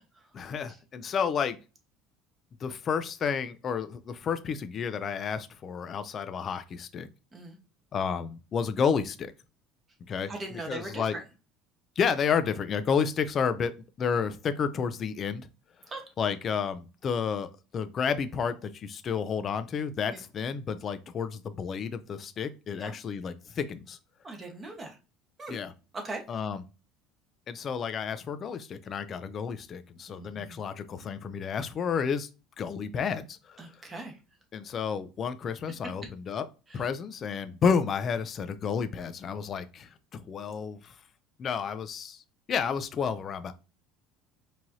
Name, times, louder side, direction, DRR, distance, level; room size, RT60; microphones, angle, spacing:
voice 1, 0.3-1.6 2.6-7.1 7.9-9.3 10.1-11.2 12.0-13.7 14.0-15.5 16.2-24.0 25.5-25.7 26.3-26.6 27.5-32.3 32.6-33.6 34.5-36.5 36.7-40.9 41.4-42.2 42.5-43.5, left 6 dB, 35° left, 0.4 m, -31 dB
voice 2, 10.3-11.0 15.9-16.0 22.7-22.9 24.2-24.9 25.4-25.5 25.9-26.2 30.1-30.6 33.6-34.1 36.7-36.8, right 2 dB, 25° right, 1.2 m, -39 dB
4.6 x 2.8 x 2.7 m
supercardioid pair, 120°, 0 cm